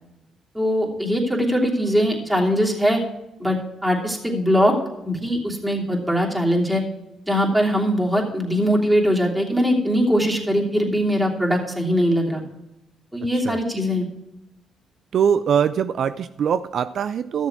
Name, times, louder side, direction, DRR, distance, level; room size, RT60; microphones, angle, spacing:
voice 1, 0.5-3.0 3.4-4.7 5.0-6.8 7.3-12.4 13.1-14.0, equal, 10° right, -2 dB, 3.0 m, -21 dB
voice 2, 13.2-13.6 15.1-17.5, right 8 dB, 65° right, 12 dB, 0.3 m, -22 dB
13.0 x 7.1 x 4.6 m, 0.92 s
cardioid pair, 80°, 0 cm